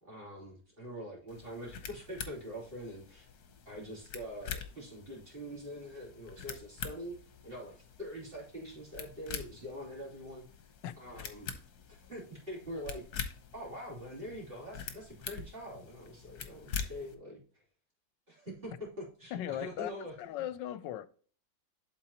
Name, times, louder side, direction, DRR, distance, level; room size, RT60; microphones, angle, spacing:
voice 1, 0.0-3.3 3.6-7.2 7.4-10.4 11.0-11.5 11.9-13.0 13.5-17.4 18.3-20.1, equal, 30° right, 3.1 m, -44 dB
sound 1, 1.3-17.1, left 7 dB, 60° left, 1.4 m, -45 dB
voice 2, 19.3-19.9 20.2-21.1, left 11 dB, 80° left, 1.3 m, -37 dB
11.5 x 4.2 x 2.9 m
omnidirectional pair, 2.0 m